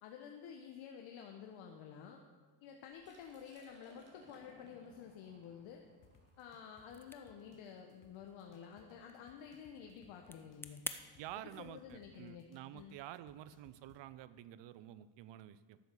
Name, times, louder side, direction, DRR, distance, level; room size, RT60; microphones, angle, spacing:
voice 1, 0.0-2.2 2.6-5.8 6.4-10.8 11.3-12.5 12.7-12.9, left 7 dB, 70° left, 2 dB, 1.3 m, -51 dB
Liquid, 2.9-8.7, equal, 20° right, 2.9 m, -65 dB
sound 1, 6.0-14.0, left 6 dB, 40° left, 1.4 m, -67 dB
sound 2, 6.8-11.0, left 2 dB, 5° left, 0.5 m, -50 dB
voice 2, 11.2-15.8, right 12 dB, 60° right, 16 dB, 0.7 m, -50 dB
12.0 x 7.3 x 6.8 m, 1.4 s
cardioid pair, 110°, 48 cm